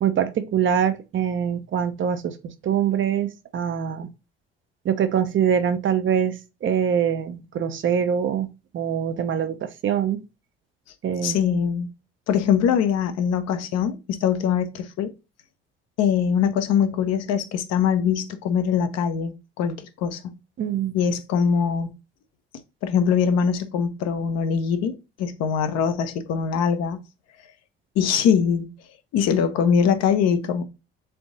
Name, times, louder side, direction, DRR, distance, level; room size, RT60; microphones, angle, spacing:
voice 1, 0.0-4.1 4.8-6.3 6.6-8.5 8.7-10.2 11.0-11.4 20.6-20.9, right 8 dB, 40° right, 0.7 m, -24 dB
voice 2, 11.2-11.9 12.3-15.1 16.0-20.4 20.9-21.9 22.8-27.0 28.0-28.7 29.1-30.6, left 7 dB, 55° left, 0.8 m, -22 dB
3.5 x 3.5 x 3.9 m
hypercardioid pair, 55°, 30 cm